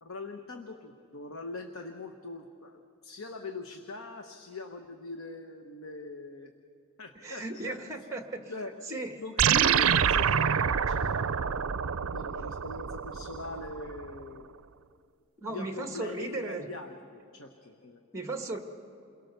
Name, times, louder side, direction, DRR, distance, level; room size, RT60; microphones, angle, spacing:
voice 1, 0.0-6.5 7.0-7.8 8.5-8.7 9.2-14.4 15.5-18.0, left 3 dB, 70° left, 5 dB, 1.1 m, -42 dB
voice 2, 7.2-8.4 8.9-9.1 15.4-16.6 18.1-18.6, right 2 dB, 15° right, 4 dB, 1.6 m, -36 dB
sound 1, 9.4-14.0, right 7 dB, 70° right, 0.5 m, -27 dB
29.0 x 22.0 x 6.8 m, 2.6 s
head